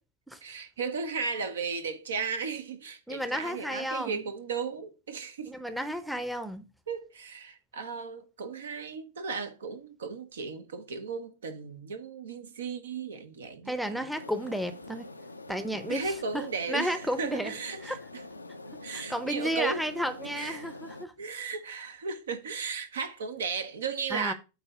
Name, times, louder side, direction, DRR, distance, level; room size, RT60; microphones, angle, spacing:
voice 1, 0.4-5.6 6.9-14.1 15.9-18.2 18.8-19.9 20.4-20.7 21.2-24.3, right 5 dB, 65° right, 0.9 m, -35 dB
voice 2, 3.1-4.2 5.5-6.6 13.7-15.1 15.5-16.4 16.7-17.5 17.8-18.0 18.9-21.1 24.1-24.3, equal, ahead, 0.7 m, -32 dB
sound 1, 14.1-21.1, left 2 dB, 80° left, 0.5 m, -45 dB
8.2 x 2.8 x 5.9 m
figure-of-eight pair, 90°, 0 cm